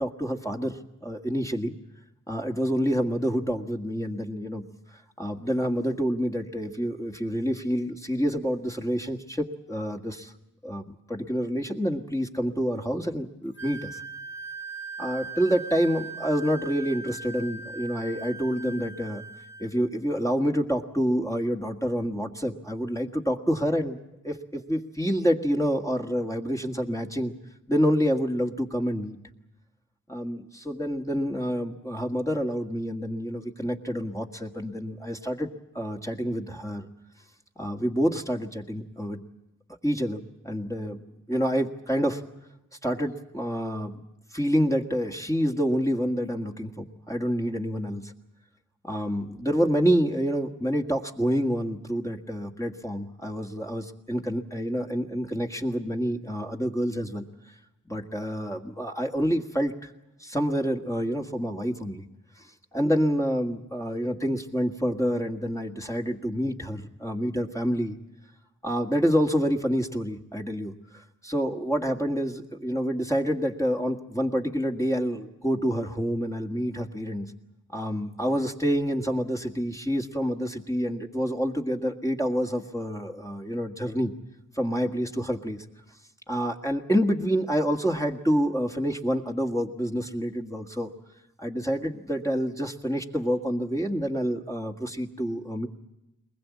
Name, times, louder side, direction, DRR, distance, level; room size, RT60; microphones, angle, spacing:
voice 1, 0.0-1.7 2.3-4.6 5.2-10.3 10.6-14.0 15.0-19.2 19.6-24.0 24.2-27.3 27.7-29.2 30.1-35.5 35.8-36.9 37.6-39.2 39.8-41.0 41.3-42.2 42.8-44.0 44.3-48.1 48.8-57.3 57.9-59.9 60.2-62.0 62.4-62.5 62.7-68.0 68.6-77.3 77.7-84.1 84.6-85.6 86.3-90.9 91.4-95.7, equal, 10° left, 1 dB, 1.8 m, -28 dB
Wind instrument woodwind instrument, 13.5-19.7, right 4 dB, 35° left, 3.0 m, -39 dB
22.0 x 20.5 x 8.5 m, 0.91 s
cardioid pair, 45°, 33 cm